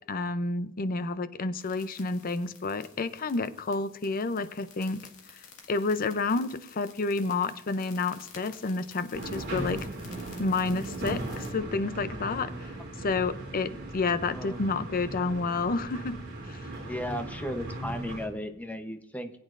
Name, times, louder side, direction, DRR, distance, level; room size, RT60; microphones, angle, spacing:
voice 1, 0.1-5.0 5.7-9.8 10.4-12.7 13.0-16.2 16.5-16.7, left 3 dB, 45° left, 13 dB, 0.6 m, -30 dB
sound 1, 1.6-11.5, left 6 dB, 80° left, 1.9 m, -53 dB
sound 2, 9.1-18.3, right 2 dB, 55° right, 2.9 m, -38 dB
voice 2, 14.3-14.6 16.7-19.3, left 1 dB, 5° left, 6 dB, 0.8 m, -35 dB
20.0 x 8.6 x 2.5 m, 0.81 s
head